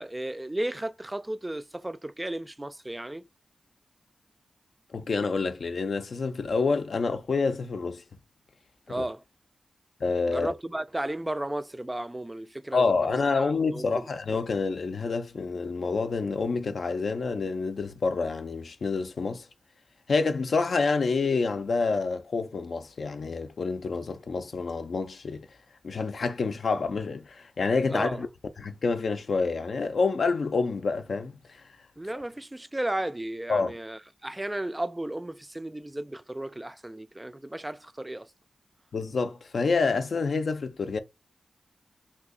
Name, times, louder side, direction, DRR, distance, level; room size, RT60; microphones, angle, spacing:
voice 1, 0.0-3.2 8.9-9.2 10.3-14.1 27.9-28.3 32.0-38.3, right 1 dB, 20° right, 0.3 m, -34 dB
voice 2, 4.9-8.0 9.0-9.1 10.0-10.5 12.7-19.5 20.1-25.5 25.8-28.3 28.6-31.3 33.5-33.7 38.9-41.0, left 4 dB, 70° left, 0.4 m, -28 dB
2.7 x 2.4 x 3.7 m
cardioid pair, 50°, 0 cm